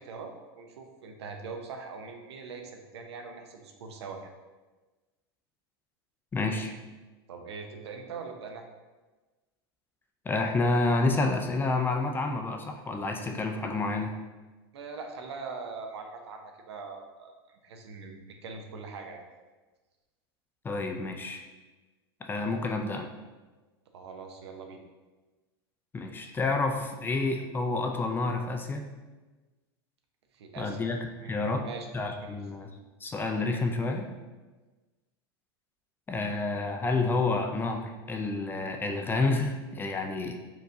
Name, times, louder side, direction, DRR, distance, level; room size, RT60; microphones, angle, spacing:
voice 1, 0.0-4.3 7.3-8.6 14.7-19.2 23.9-24.8 30.3-30.9 31.2-31.9 32.2-32.4, right 4 dB, 80° right, 4 dB, 0.7 m, -42 dB
voice 2, 6.3-6.7 10.3-14.1 20.6-21.5 22.2-23.1 25.9-28.8 30.6-31.0 31.2-31.6 31.9-32.7 33.0-34.1 36.1-40.4, left 3 dB, 15° left, 4 dB, 0.4 m, -29 dB
4.6 x 3.7 x 2.7 m, 1.2 s
hypercardioid pair, 115°, 14 cm